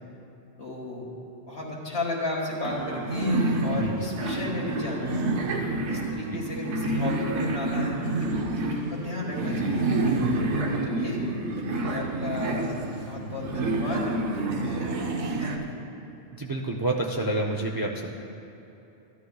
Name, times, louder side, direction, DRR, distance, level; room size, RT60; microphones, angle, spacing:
voice 1, 0.6-1.1 1.5-5.2 5.9-9.9 10.5-11.2 11.6-14.1 14.6-14.9 15.4-15.8, left 2 dB, 60° left, -3 dB, 2.1 m, -34 dB
sound 1, 2.6-15.6, right 2 dB, 85° right, 1.1 m, -28 dB
voice 2, 16.4-18.1, right 2 dB, 30° right, 1 dB, 0.4 m, -29 dB
14.5 x 11.5 x 2.3 m, 2.9 s
omnidirectional pair, 1.2 m